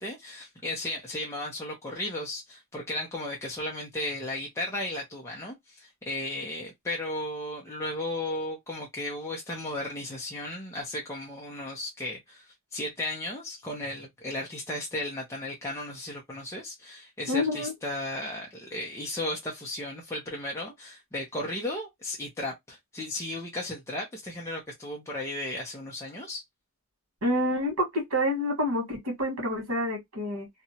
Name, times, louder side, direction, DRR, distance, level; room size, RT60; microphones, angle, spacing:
voice 1, 0.0-26.4, left 1 dB, 15° left, 0.6 m, -35 dB
voice 2, 17.3-17.7 27.2-30.5, left 1 dB, 75° right, 1.5 m, -28 dB
2.9 x 2.3 x 2.7 m
head